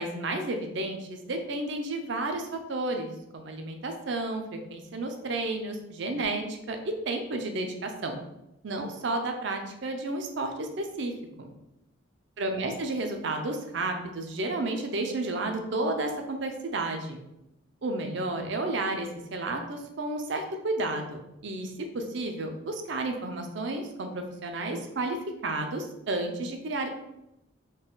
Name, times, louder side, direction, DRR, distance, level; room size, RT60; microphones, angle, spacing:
voice 1, 0.0-8.2 8.6-11.1 11.4-11.5 12.4-17.2 17.8-25.2 25.4-26.9, right 2 dB, 60° right, 4 dB, 0.5 m, -32 dB
3.9 x 2.3 x 3.8 m, 0.89 s
head